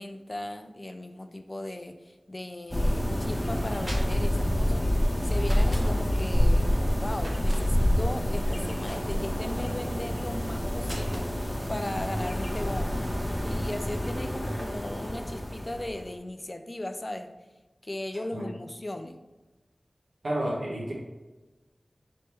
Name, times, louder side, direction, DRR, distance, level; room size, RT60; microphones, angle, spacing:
voice 1, 0.0-6.7 7.0-13.0 13.4-17.3 17.8-19.2, left 1 dB, 30° left, 8 dB, 0.3 m, -37 dB
sound 1, 2.7-16.0, equal, ahead, 0.8 m, -27 dB
sound 2, 3.8-4.4 5.4-5.9 7.2-7.6 8.9-9.4 10.8-11.3, equal, 35° right, 1.0 m, -39 dB
voice 2, 20.2-20.9, right 1 dB, 90° right, -5 dB, 1.1 m, -30 dB
3.4 x 3.1 x 4.4 m, 1.1 s
wide cardioid pair, 70°, 0 cm